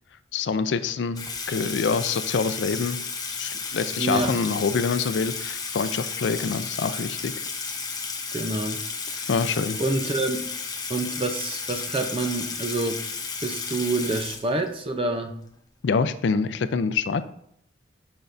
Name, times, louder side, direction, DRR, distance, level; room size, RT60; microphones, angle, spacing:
voice 1, 0.3-3.0 3.3-7.3 9.3-9.8 15.8-17.2, left 5 dB, 70° left, 12 dB, 0.4 m, -26 dB
Water tap faucet / Sink (filling or washing), 1.2-14.9, left 5 dB, 20° left, 0.6 m, -33 dB
voice 2, 4.0-4.4 8.3-9.3 9.8-10.4 10.9-13.0 13.4-15.4, right 2 dB, 30° right, 5 dB, 0.6 m, -27 dB
6.8 x 6.2 x 2.6 m, 0.70 s
head